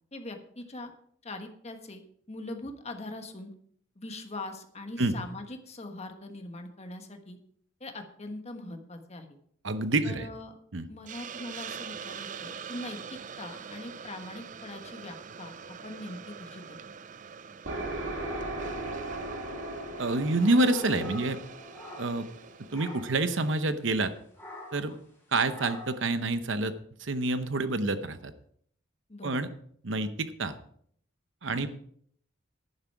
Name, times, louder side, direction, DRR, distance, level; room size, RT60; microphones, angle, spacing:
voice 1, 0.1-0.9 1.2-3.5 3.9-7.4 7.8-9.3 10.0-10.5 10.9-16.8 24.9-25.0 29.1-29.4 31.5-31.6, left 2 dB, 35° left, 5 dB, 1.4 m, -42 dB
voice 2, 9.6-10.3 10.7-10.9 20.0-21.4 22.0-22.3 22.7-24.1 24.7-24.9 25.3-26.7 27.0-28.3 29.2-29.5 29.8-30.5 31.4-31.7, right 2 dB, 65° right, 11 dB, 0.9 m, -27 dB
Hiss, 11.1-23.6, right 7 dB, 40° right, 0.5 m, -45 dB
sound 1, 17.6-23.3, right 2 dB, 85° right, 2.7 m, -38 dB
sound 2, 20.0-22.4 22.7-23.2 24.4-24.9 25.5-26.1, equal, 10° left, 5.3 m, -44 dB
11.0 x 9.9 x 4.7 m, 0.64 s
head